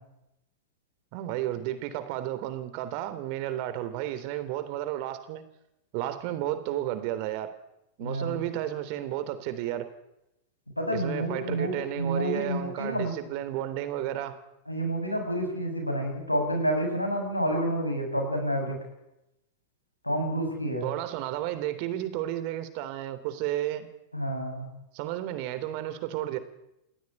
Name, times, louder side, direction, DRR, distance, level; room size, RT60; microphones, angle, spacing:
voice 1, 1.1-5.4 5.9-7.5 8.0-9.9 10.9-14.4 20.8-23.9 24.9-26.4, right 13 dB, 45° right, 12 dB, 3.5 m, -32 dB
voice 2, 8.0-8.3 10.8-13.2 14.7-18.8 20.0-20.8 24.1-24.7, right 1 dB, 85° left, 4 dB, 7.6 m, -29 dB
28.5 x 18.5 x 9.9 m, 0.87 s
figure-of-eight pair, 90°, 0 cm